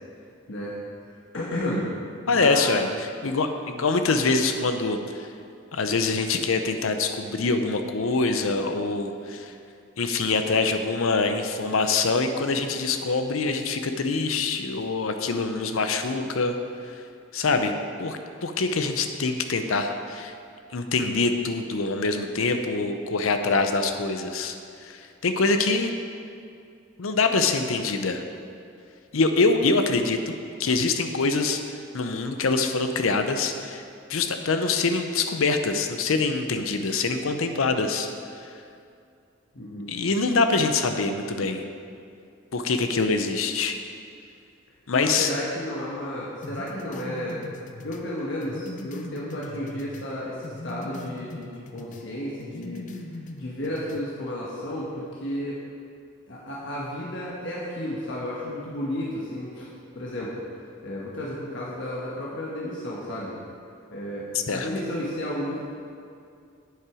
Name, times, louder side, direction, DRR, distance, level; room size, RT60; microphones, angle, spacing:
voice 1, 1.3-1.9 2.3-2.8 39.5-39.9 44.9-47.4 47.8-55.6 56.3-59.7 59.9-60.4 60.8-63.3 63.9-65.6, left 1 dB, 65° left, -6 dB, 1.2 m, -32 dB
voice 2, 2.3-5.3 5.7-9.5 10.0-16.6 16.8-16.9 17.3-17.7 18.0-20.3 20.7-24.6 24.8-25.9 27.0-28.2 29.1-30.3 30.6-33.8 34.1-38.1 38.4-38.5 39.9-41.6 42.5-43.8 44.9-45.3 64.5-64.7, left 3 dB, 85° left, 7 dB, 0.7 m, -24 dB
sound 1, 46.4-50.1 50.4-52.1 52.4-54.1, left 2 dB, 35° left, 0.5 m, -40 dB
8.1 x 7.5 x 4.9 m, 2.4 s
head